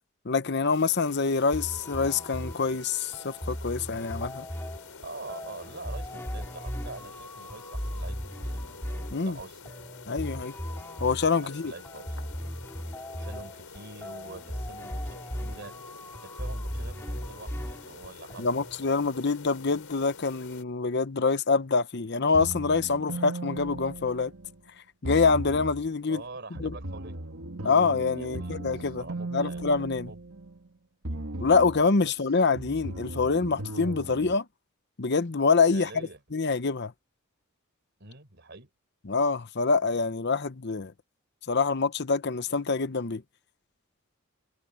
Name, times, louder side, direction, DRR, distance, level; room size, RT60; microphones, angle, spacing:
voice 1, 0.2-4.5 9.1-9.4 10.1-10.5 11.0-11.7 18.4-24.3 25.0-26.2 26.6-26.7 27.6-29.0 29.3-30.1 31.4-34.5 35.0-35.9 36.3-36.9 39.1-40.9 41.5-43.2, left 4 dB, 55° left, 0.8 m, -25 dB
sound 1, 0.7-20.6, left 4 dB, 90° left, 4.1 m, -48 dB
sound 2, 1.5-18.8, equal, 10° left, 3.7 m, -37 dB
voice 2, 5.0-8.9 9.2-9.9 11.4-12.2 13.2-15.7 16.2-19.0 26.1-27.2 28.2-29.6 30.0-30.2 32.0-32.1 35.7-36.2 38.0-38.7, right 3 dB, 55° right, 4.5 m, -45 dB
sound 3, 22.3-24.6 25.0-25.9 26.6-30.7 31.0-31.9 32.6-34.3, right 2 dB, 70° right, 1.9 m, -37 dB
head